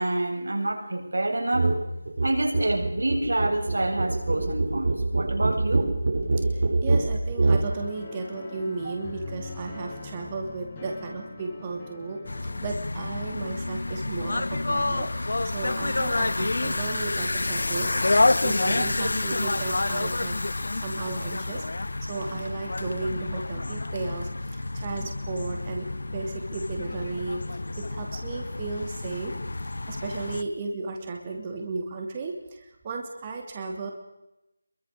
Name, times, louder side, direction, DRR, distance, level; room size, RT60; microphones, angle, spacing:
voice 1, 0.0-1.7 2.2-5.9 8.8-8.9, right 1 dB, 90° right, 3 dB, 7.6 m, -27 dB
sound 1, 1.5-1.8 2.1-7.7, right 3 dB, 55° right, 6.3 m, -25 dB
voice 2, 6.8-12.2 12.6-15.1 15.5-18.0 18.4-20.4 20.8-21.6 22.1-25.9 26.1-27.4 27.8-29.3 29.9-33.9, right 3 dB, 20° right, 3 dB, 2.8 m, -34 dB
sound 2, 7.7-12.7, left 3 dB, 20° left, 4.8 m, -42 dB
sound 3, 12.2-30.4, left 2 dB, 70° left, 1.6 m, -28 dB
26.5 x 23.0 x 6.7 m, 0.91 s
figure-of-eight pair, 175°, 0 cm